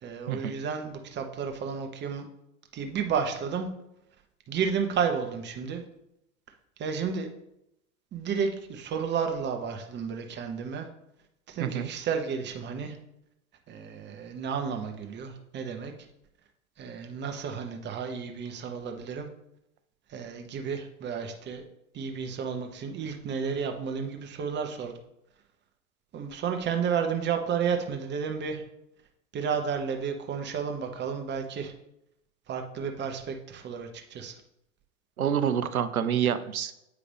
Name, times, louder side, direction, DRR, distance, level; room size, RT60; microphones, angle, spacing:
voice 1, 0.0-2.3 2.7-3.7 4.5-5.8 6.8-7.3 8.1-10.9 11.5-13.0 13.7-15.9 16.8-19.3 20.1-21.6 21.9-25.0 26.1-28.6 29.3-31.7 32.5-34.4, right 6 dB, 25° right, 5 dB, 1.0 m, -32 dB
voice 2, 35.2-36.7, right 9 dB, 85° right, 11 dB, 0.6 m, -27 dB
8.3 x 4.9 x 3.4 m, 0.82 s
figure-of-eight pair, 90°, 41 cm